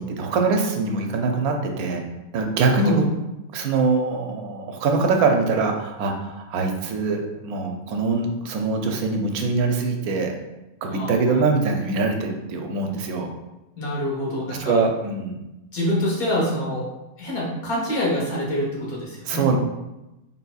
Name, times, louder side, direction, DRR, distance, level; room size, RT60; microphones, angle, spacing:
voice 1, 0.0-2.1 2.3-3.0 3.5-10.3 10.8-13.3 14.6-15.4 19.3-19.6, right 4 dB, 85° right, 3 dB, 1.1 m, -23 dB
voice 2, 10.9-11.4 13.8-14.8 15.7-16.9 17.2-19.4, left 1 dB, 80° left, -4 dB, 1.7 m, -26 dB
4.1 x 3.7 x 2.3 m, 0.97 s
omnidirectional pair, 1.5 m